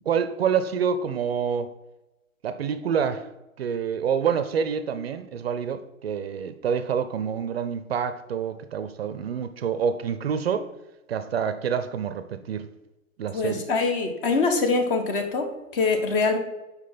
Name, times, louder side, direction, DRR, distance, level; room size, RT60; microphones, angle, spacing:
voice 1, 0.1-1.7 2.4-3.3 3.6-10.7 11.1-12.7 13.2-13.7, right 7 dB, 50° right, 0.5 m, -27 dB
voice 2, 13.3-16.4, left 4 dB, 40° left, 1.2 m, -24 dB
5.1 x 4.8 x 5.7 m
hypercardioid pair, 130°, 41 cm